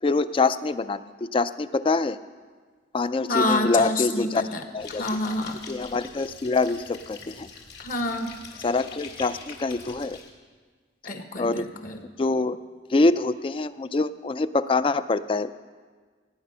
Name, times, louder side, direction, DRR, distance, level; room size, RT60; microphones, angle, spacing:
voice 1, 0.0-2.2 2.9-4.4 4.7-5.1 5.7-7.5 8.6-10.2 11.4-11.7 12.2-12.6 12.9-15.5, left 3 dB, 30° left, 14 dB, 0.4 m, -25 dB
voice 2, 3.3-4.6 4.9-5.6 7.8-8.3 11.0-12.0, left 2 dB, 50° left, 6 dB, 1.2 m, -27 dB
sound 1, 4.8-10.3, left 5 dB, 65° left, 2.0 m, -44 dB
17.5 x 9.3 x 5.5 m, 1.5 s
head